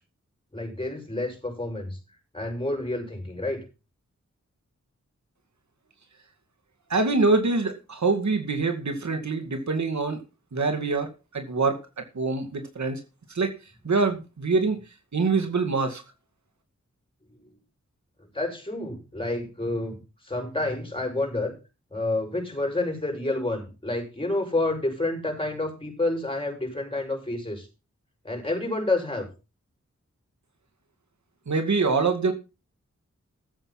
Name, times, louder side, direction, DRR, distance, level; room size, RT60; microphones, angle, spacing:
voice 1, 0.5-2.0 2.3-3.6 17.3-17.6 18.2-20.0 20.2-21.5 21.9-27.7 28.2-29.3, left 2 dB, 20° left, 2 dB, 6.9 m, -29 dB
voice 2, 6.9-10.2 10.5-11.1 11.3-11.8 12.1-13.0 13.3-13.5 13.8-14.8 15.1-16.0 31.5-32.3, right 3 dB, 75° right, 6 dB, 2.3 m, -24 dB
14.0 x 7.9 x 6.0 m, 0.30 s
wide cardioid pair, 75°, 29 cm